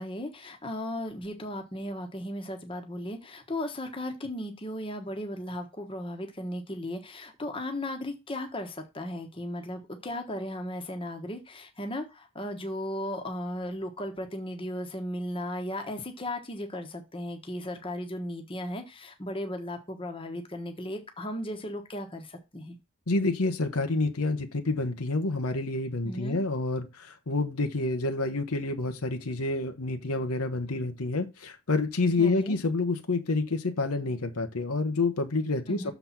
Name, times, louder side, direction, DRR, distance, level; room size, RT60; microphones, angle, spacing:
voice 1, 0.0-22.8 26.0-26.4 32.2-32.6 35.7-35.9, left 1 dB, 25° left, 1.1 m, -36 dB
voice 2, 23.1-35.9, left 3 dB, 80° left, 1.0 m, -28 dB
6.9 x 4.1 x 5.9 m
head